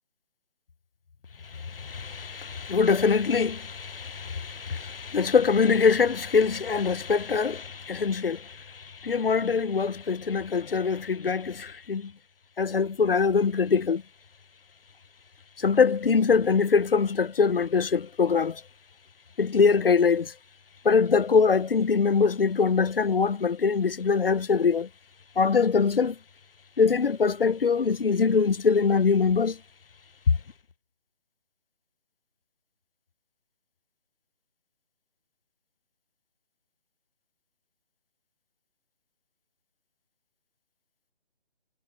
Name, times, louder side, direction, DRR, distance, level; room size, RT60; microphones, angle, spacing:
voice 1, 1.5-12.1 12.6-14.0 15.6-18.6 19.4-20.3 20.8-24.9 25.4-26.2 26.8-29.6, left 5 dB, 70° left, 1.2 m, -23 dB
hypercardioid pair, 170°, 30 cm